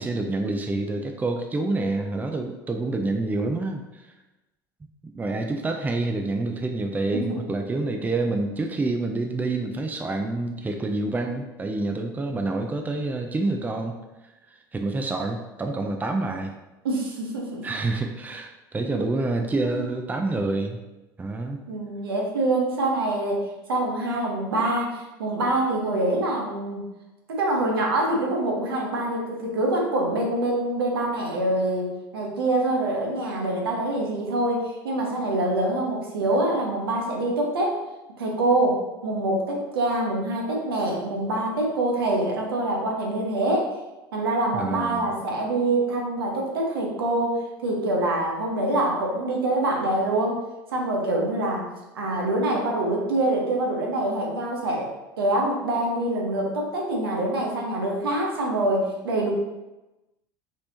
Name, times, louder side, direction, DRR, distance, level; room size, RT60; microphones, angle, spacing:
voice 1, 0.0-4.1 5.0-14.0 14.7-16.5 17.6-20.8 21.2-21.6 44.5-45.1, right 2 dB, 15° right, 4 dB, 0.5 m, -27 dB
voice 2, 16.8-17.6 19.7-19.9 21.7-23.4 23.7-26.8 27.3-37.8 38.2-43.7 44.1-50.4 50.7-51.7 51.9-54.9 55.2-59.3, right 1 dB, 80° right, -1 dB, 1.0 m, -25 dB
5.3 x 3.4 x 2.8 m, 1.0 s
hypercardioid pair, 75°, 12 cm